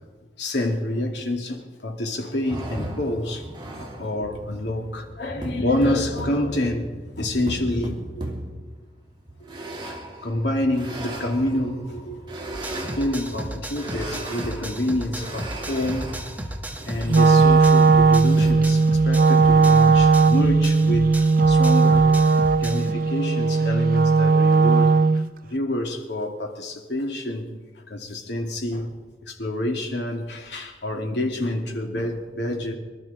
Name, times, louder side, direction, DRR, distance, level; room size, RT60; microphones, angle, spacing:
voice 1, 0.4-3.5 3.8-6.9 7.2-8.3 9.9-12.4 12.9-16.2 16.8-22.1 22.6-25.2 25.5-27.5 27.9-28.9 29.2-32.7, left 1 dB, 75° left, 1 dB, 2.7 m, -27 dB
sound 1, 2.4-18.5, right 1 dB, 25° right, 2.7 m, -36 dB
sound 2, 12.5-22.9, right 1 dB, 10° right, 1.1 m, -35 dB
Wind instrument woodwind instrument, 17.1-25.3, right 4 dB, 50° right, 0.5 m, -17 dB
24.5 x 13.0 x 4.3 m, 1.3 s
head